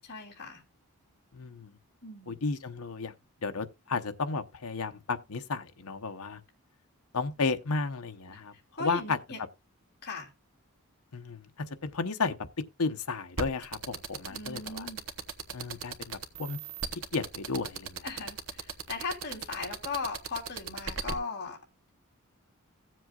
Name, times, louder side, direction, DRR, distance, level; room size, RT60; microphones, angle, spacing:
voice 1, 0.0-0.6 2.0-2.4 8.3-8.4 8.8-9.4 10.0-10.3 14.3-15.0 18.0-21.6, left 4 dB, 45° left, 3.1 m, -38 dB
voice 2, 1.3-1.7 2.3-3.1 3.4-6.4 7.1-8.5 8.8-9.2 11.1-12.3 12.8-14.9 15.5-16.6 16.9-18.0, left 4 dB, 80° left, 0.9 m, -33 dB
sound 1, 13.4-21.1, right 6 dB, 70° right, 1.0 m, -36 dB
16.5 x 7.7 x 2.4 m
head